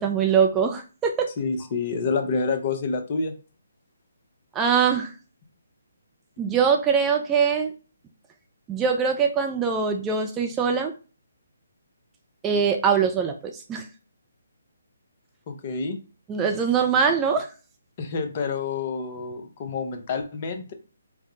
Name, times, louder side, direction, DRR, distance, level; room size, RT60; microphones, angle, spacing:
voice 1, 0.0-1.3 4.5-5.1 6.4-7.7 8.7-10.9 12.4-13.8 16.3-17.5, right 6 dB, 15° right, 3 dB, 0.4 m, -22 dB
voice 2, 1.4-3.3 15.5-16.0 18.0-20.7, left 4 dB, 35° left, 6 dB, 0.7 m, -28 dB
4.6 x 2.1 x 3.7 m, 0.34 s
figure-of-eight pair, 140°, 0 cm